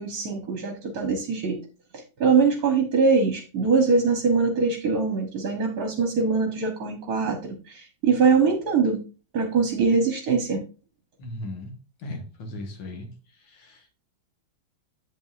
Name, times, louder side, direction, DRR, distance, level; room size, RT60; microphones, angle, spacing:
voice 1, 0.0-1.6 1.9-9.0 9.3-10.6, right 4 dB, 55° right, 4 dB, 1.3 m, -23 dB
voice 2, 11.2-11.7 12.0-13.1 13.5-13.9, left 1 dB, 75° left, 5 dB, 2.2 m, -37 dB
8.1 x 7.7 x 2.4 m, 0.33 s
omnidirectional pair, 2.3 m